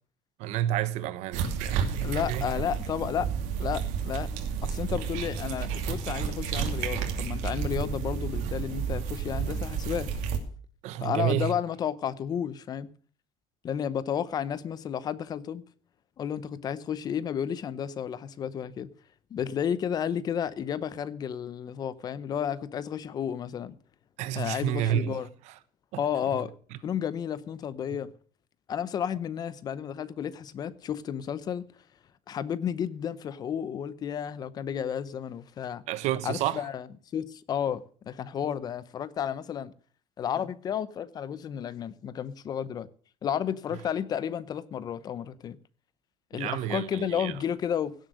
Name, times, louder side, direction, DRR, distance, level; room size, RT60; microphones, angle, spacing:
voice 1, 0.4-2.5 10.8-11.5 24.2-25.5 25.9-26.0 35.9-36.7 46.3-47.4, right 12 dB, 70° right, 1.2 m, -30 dB
sound 1, 1.3-10.4, right 7 dB, 90° right, 2.7 m, -31 dB
voice 2, 2.0-3.3 3.6-4.3 4.6-10.1 11.0-12.9 13.6-15.6 16.2-18.9 19.3-23.8 24.3-25.3 26.0-26.6 26.8-28.1 28.7-31.6 32.3-35.8 36.2-36.9 37.1-39.7 40.2-42.9 43.2-45.6 46.3-47.9, left 8 dB, 35° left, 0.8 m, -32 dB
17.0 x 7.8 x 6.5 m
cardioid pair, 165°, 12 cm